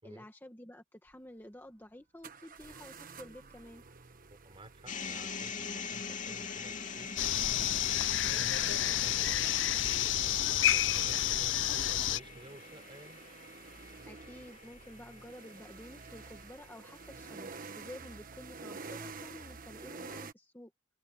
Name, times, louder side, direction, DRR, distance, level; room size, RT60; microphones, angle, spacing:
voice 1, 0.0-3.8 14.1-20.7, left 1 dB, 10° left, 1.7 m, -51 dB
sound 1, 1.1-1.2 2.2-20.3, right 4 dB, 45° right, 1.3 m, -50 dB
voice 2, 4.3-7.7 8.3-13.2, right 1 dB, 25° right, 5.1 m, -53 dB
sound 2, 4.9-17.0, left 5 dB, 40° left, 3.0 m, -44 dB
sound 3, 7.2-12.2, left 12 dB, 65° left, 0.6 m, -29 dB
head